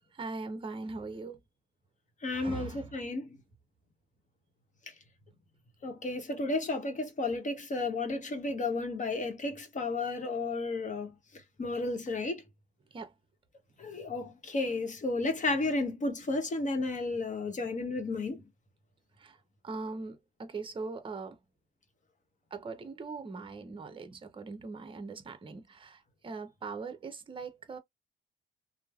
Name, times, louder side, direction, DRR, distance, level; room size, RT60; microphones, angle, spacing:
voice 1, 0.1-1.4 2.3-2.9 12.9-13.1 19.2-19.4 19.6-21.4 22.5-27.8, right 4 dB, 25° right, 0.7 m, -41 dB
voice 2, 2.2-3.4 5.8-11.1 11.6-12.4 13.8-18.4, left 3 dB, 40° left, 0.9 m, -32 dB
3.1 x 2.0 x 2.3 m
cardioid pair, 90°, 20 cm